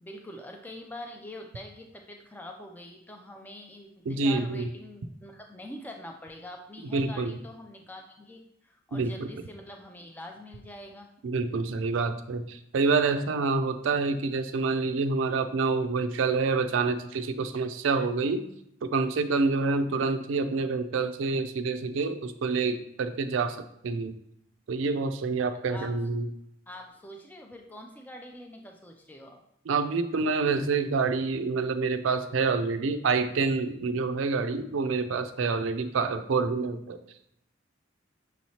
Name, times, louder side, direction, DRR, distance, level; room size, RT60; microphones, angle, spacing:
voice 1, 0.0-11.1 19.8-20.2 25.7-26.0 26.7-29.4, left 1 dB, 10° left, 2 dB, 0.3 m, -44 dB
voice 2, 4.1-4.7 6.9-7.3 8.9-9.1 11.2-18.4 18.8-23.6 23.8-24.1 24.7-26.3 29.7-37.0, right 4 dB, 80° right, 9 dB, 0.4 m, -27 dB
6.2 x 3.0 x 2.8 m, 0.75 s
head